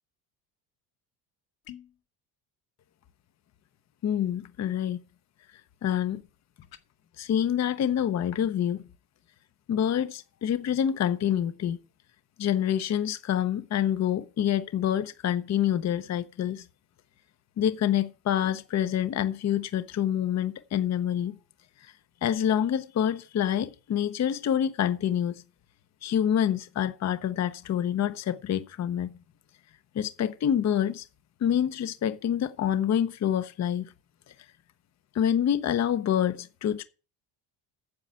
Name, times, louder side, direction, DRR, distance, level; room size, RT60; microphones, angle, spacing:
sound 1, 1.6-2.0 6.6-6.9, left 11 dB, 60° left, 1.5 m, -47 dB
voice 1, 4.0-5.0 5.8-6.2 7.2-8.8 9.7-11.8 12.4-16.7 17.6-21.4 21.8-21.9 22.2-25.4 26.0-29.1 29.9-31.1 31.4-33.9 35.1-36.8, left 9 dB, 40° left, 0.9 m, -27 dB
9.7 x 7.3 x 8.9 m
cardioid pair, 130°, 42 cm